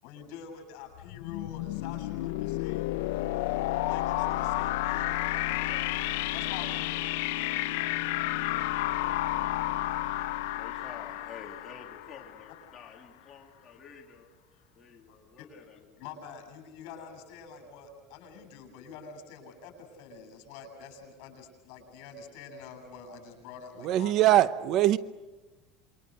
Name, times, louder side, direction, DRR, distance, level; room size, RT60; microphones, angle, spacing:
voice 1, 0.0-2.9 3.8-5.8 6.3-6.9 15.1-15.5 16.0-24.1, left 6 dB, 65° left, 7.9 m, -46 dB
sound 1, 0.9-12.6, left 16 dB, 85° left, 0.7 m, -31 dB
voice 2, 10.2-16.0, left 6 dB, 25° left, 3.3 m, -50 dB
voice 3, 23.8-25.0, right 13 dB, 50° right, 0.8 m, -22 dB
28.0 x 23.5 x 6.6 m
cardioid pair, 150°, 0 cm